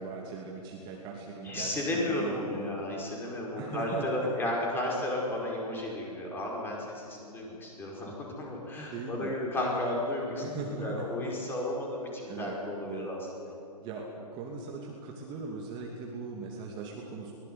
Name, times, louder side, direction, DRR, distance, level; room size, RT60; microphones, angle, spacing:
voice 1, 0.0-2.7 3.6-4.0 8.0-8.1 8.9-9.3 10.4-11.0 12.3-12.6 12.8-13.1 13.8-17.3, right 4 dB, 20° right, 0 dB, 2.7 m, -39 dB
voice 2, 1.4-13.6, left 1 dB, 10° left, -2 dB, 5.2 m, -33 dB
23.5 x 19.5 x 9.6 m, 2.7 s
hypercardioid pair, 145°, 20 cm